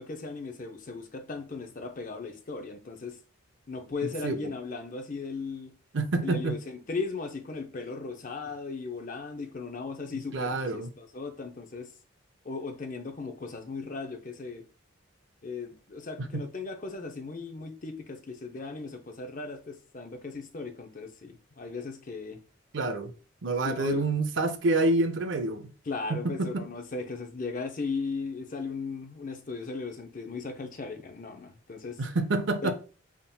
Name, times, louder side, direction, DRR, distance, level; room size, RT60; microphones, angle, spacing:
voice 1, 0.0-3.2 3.7-5.8 6.2-11.9 12.4-14.7 15.4-22.4 23.6-24.1 25.9-32.0 32.6-32.7, left 4 dB, 40° left, 0.5 m, -37 dB
voice 2, 5.9-6.5 10.3-10.9 22.7-23.1 23.4-25.7 26.1-26.6 32.0-32.7, right 2 dB, 60° right, 0.5 m, -27 dB
4.0 x 3.6 x 2.2 m
head